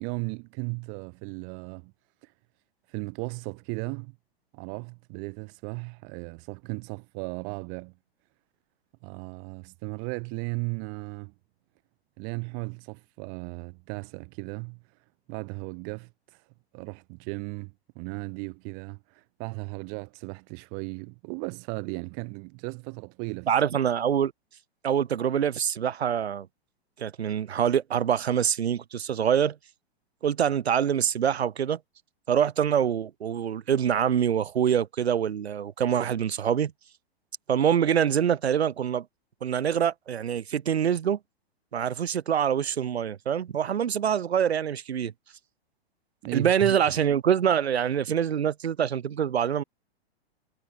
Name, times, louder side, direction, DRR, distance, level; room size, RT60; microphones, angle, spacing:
voice 1, 0.0-1.9 2.9-4.2 4.5-7.9 9.0-11.3 12.2-14.8 15.3-16.1 16.7-23.5 46.2-47.0, right 40 dB or more, 45° right, 3.9 m, -36 dB
voice 2, 23.5-24.3 24.8-26.5 27.0-29.5 30.2-31.8 32.3-36.7 37.5-39.0 39.4-41.2 41.7-45.1 46.3-49.6, right 8 dB, 80° right, 1.4 m, -25 dB
hypercardioid pair, 115°, 31 cm